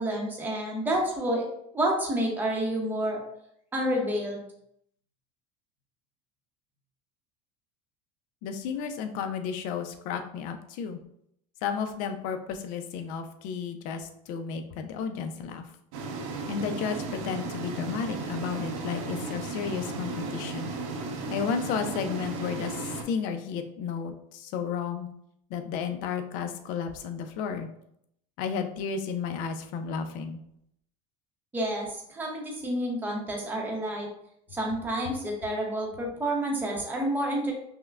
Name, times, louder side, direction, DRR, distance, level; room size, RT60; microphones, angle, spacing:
voice 1, 0.0-1.5 1.7-3.2 3.7-4.4 31.5-34.1 34.5-37.5, right 1 dB, 10° right, -1 dB, 0.7 m, -29 dB
voice 2, 8.4-11.0 11.6-15.6 16.5-20.7 21.3-25.1 25.5-27.7 28.4-30.4, left 6 dB, 55° left, 7 dB, 0.5 m, -33 dB
sound 1, 15.9-23.0, right 3 dB, 75° right, 0.7 m, -35 dB
5.5 x 2.1 x 2.3 m, 0.73 s
supercardioid pair, 145°, 17 cm